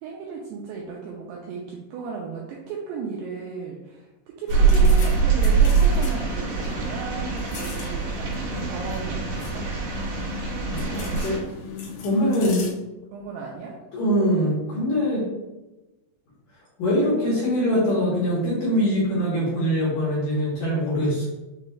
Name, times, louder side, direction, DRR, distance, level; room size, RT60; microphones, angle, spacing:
voice 1, 0.0-9.7 13.1-13.8, right 5 dB, 90° right, -2 dB, 2.3 m, -35 dB
sound 1, 4.5-12.7, left 6 dB, 90° left, 1.8 m, -37 dB
sound 2, 4.5-11.4, right 5 dB, 65° right, 2.7 m, -23 dB
voice 2, 10.6-11.4 12.0-12.6 13.9-15.3 16.8-21.3, equal, 70° left, -7 dB, 2.1 m, -23 dB
6.7 x 2.2 x 3.2 m, 1.0 s
omnidirectional pair, 5.2 m